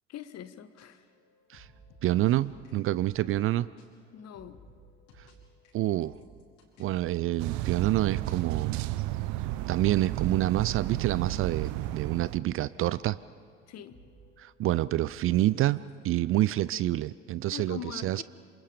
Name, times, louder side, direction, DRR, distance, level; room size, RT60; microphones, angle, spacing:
voice 1, 0.1-1.0 4.1-4.6 13.7-14.0 17.5-18.2, left 9 dB, 45° left, 12 dB, 1.4 m, -42 dB
sound 1, 0.8-3.5 3.8-3.9 4.2-12.5 12.8-17.5, right 1 dB, 65° left, 5.4 m, -57 dB
voice 2, 2.0-3.7 5.2-5.3 5.7-6.1 6.8-8.8 9.7-13.2 14.4-18.2, right 15 dB, 35° right, 18 dB, 0.5 m, -27 dB
sound 2, 7.4-12.4, right 16 dB, 50° right, 0.9 m, -32 dB
27.0 x 27.0 x 5.2 m, 2.2 s
figure-of-eight pair, 65°, 36 cm